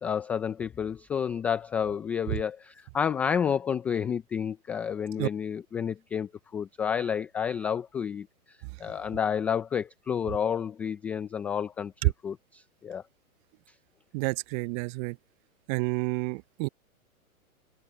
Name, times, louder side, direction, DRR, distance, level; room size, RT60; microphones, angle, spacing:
voice 1, 0.0-13.0, left 7 dB, 5° left, 0.3 m, -30 dB
voice 2, 14.1-15.2 15.7-16.7, right 28 dB, 30° right, 0.7 m, -28 dB
hypercardioid pair, 115°, 44 cm